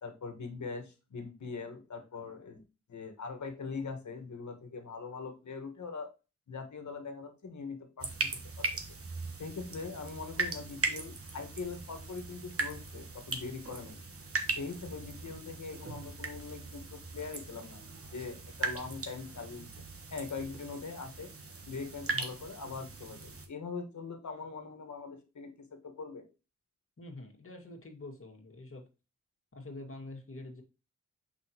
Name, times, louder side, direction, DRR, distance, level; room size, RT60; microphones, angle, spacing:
voice 1, 0.0-2.6 2.9-6.1 6.5-8.3 8.6-8.7 9.4-14.0 14.6-19.7 20.1-21.3 21.6-26.2, left 4 dB, 65° left, 6 dB, 1.6 m, -42 dB
sound 1, 8.0-23.5, right 3 dB, 45° right, 1.3 m, -39 dB
voice 2, 27.0-28.9 29.5-30.6, left 2 dB, 45° left, 2 dB, 1.9 m, -46 dB
6.2 x 5.2 x 2.9 m, 0.30 s
cardioid pair, 65°, 31 cm